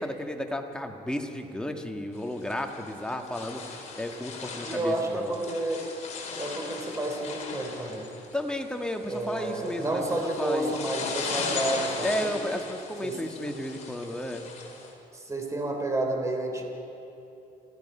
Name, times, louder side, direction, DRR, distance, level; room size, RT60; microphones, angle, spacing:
voice 1, 0.0-3.6 3.9-5.3 8.3-10.7 12.0-14.5, left 1 dB, 5° left, 3 dB, 1.8 m, -33 dB
sound 1, 2.1-14.9, left 4 dB, 45° left, 4.2 m, -38 dB
voice 2, 4.6-5.9 6.4-8.1 9.1-12.3 13.0-13.2 15.1-16.6, right 2 dB, 20° right, 2 dB, 3.4 m, -30 dB
29.0 x 16.0 x 5.6 m, 2.9 s
cardioid pair, 110°, 17 cm